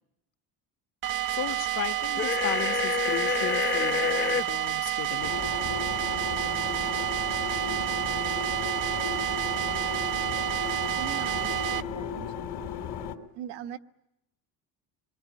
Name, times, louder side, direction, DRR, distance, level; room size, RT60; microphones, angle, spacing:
sound 1, 1.0-11.8, right 13 dB, 50° right, 0.9 m, -29 dB
voice 1, 1.3-5.5, left 11 dB, 50° left, 8 dB, 1.3 m, -35 dB
sound 2, 2.2-4.4, left 6 dB, 25° left, 0.9 m, -28 dB
sound 3, 5.2-13.1, left 7 dB, 65° left, 3.1 m, -35 dB
voice 2, 10.9-12.4 13.3-13.8, right 10 dB, 80° right, 8 dB, 1.4 m, -40 dB
26.5 x 22.5 x 9.2 m, 0.85 s
cardioid pair, 145°, 41 cm